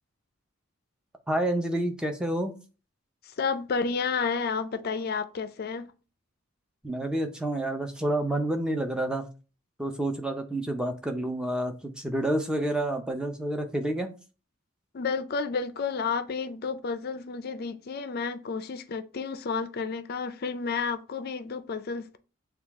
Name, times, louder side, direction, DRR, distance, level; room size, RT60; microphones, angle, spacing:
voice 1, 1.3-2.5 6.8-9.3 9.8-14.1, right 1 dB, 5° right, 0.5 m, -29 dB
voice 2, 3.3-5.9 14.9-22.2, left 5 dB, 45° left, 0.4 m, -31 dB
6.4 x 2.3 x 3.5 m
head